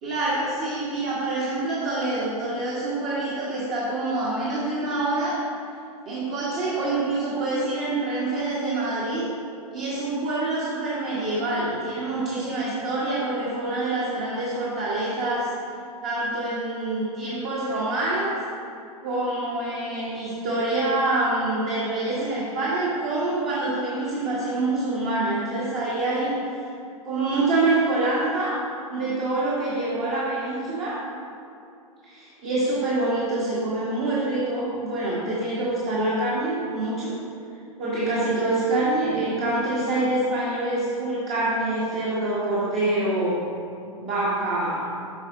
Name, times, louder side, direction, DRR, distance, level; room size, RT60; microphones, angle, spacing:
voice 1, 0.0-5.4 6.0-9.3 9.7-15.5 16.0-18.3 19.0-26.7 27.0-28.6 28.9-31.0 32.0-37.2 37.8-43.4 44.0-44.9, right 2 dB, 35° right, -7 dB, 1.6 m, -26 dB
8.1 x 5.1 x 3.9 m, 2.6 s
figure-of-eight pair, 100°, 19 cm